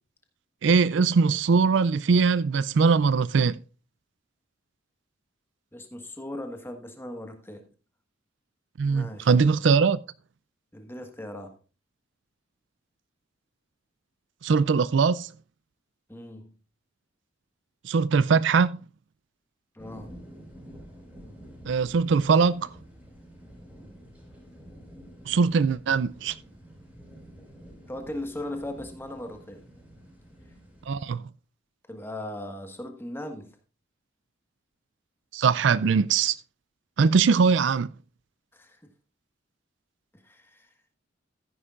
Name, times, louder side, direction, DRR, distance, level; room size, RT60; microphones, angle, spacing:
voice 1, 0.6-3.6 8.8-10.0 14.4-15.3 17.8-18.8 21.7-22.7 25.3-26.4 30.9-31.2 35.3-36.4 37.0-37.9, right 5 dB, 65° right, 0.4 m, -21 dB
voice 2, 5.7-7.7 8.9-9.3 10.7-11.6 16.1-16.5 19.7-20.1 27.9-29.6 31.9-33.5 38.5-38.8 40.1-40.7, left 1 dB, 10° left, 1.5 m, -38 dB
Thunder & Seagull, 19.8-31.1, equal, 5° right, 4.7 m, -49 dB
14.5 x 9.8 x 2.5 m
head